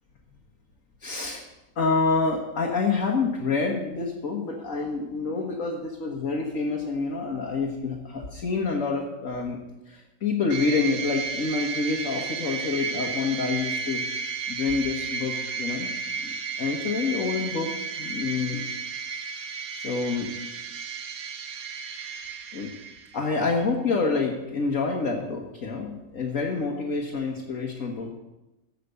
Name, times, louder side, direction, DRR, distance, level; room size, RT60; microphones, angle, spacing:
voice 1, 1.0-1.4 1.8-9.6 9.9-14.2 14.5-15.9 16.2-18.6 19.7-20.3 22.5-22.7 23.1-28.1, left 4 dB, 50° left, -1 dB, 1.6 m, -27 dB
sound 1, 10.5-23.3, right 5 dB, 60° right, 1.2 m, -33 dB
15.0 x 5.9 x 6.7 m, 1.0 s
omnidirectional pair, 1.9 m